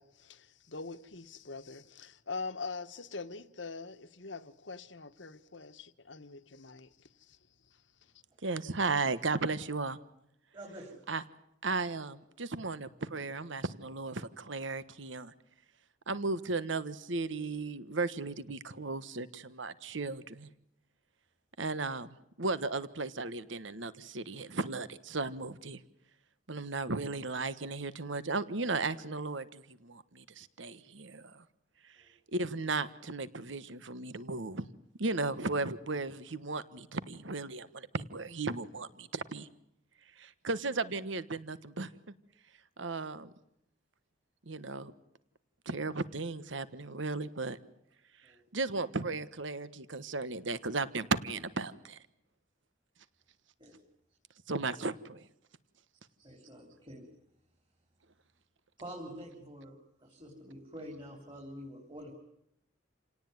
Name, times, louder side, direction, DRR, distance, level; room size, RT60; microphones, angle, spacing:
voice 1, 0.0-7.4 7.7-7.8, left 4 dB, 70° left, 1.4 m, -43 dB
voice 2, 8.4-10.0 11.1-11.2 11.6-15.3 16.1-20.5 21.6-22.1 22.4-25.8 26.5-31.4 31.8-32.0 32.3-34.7 35.0-39.5 40.2-41.9 42.8-43.3 44.5-44.9 45.6-47.6 48.2-52.0 54.5-55.3, right 3 dB, 80° right, 1.3 m, -35 dB
voice 3, 10.5-11.0 32.0-32.2 48.2-48.4 53.6-53.8 56.2-57.0 58.8-59.7 60.0-62.1, equal, 25° right, 4.1 m, -47 dB
29.0 x 18.0 x 9.5 m
head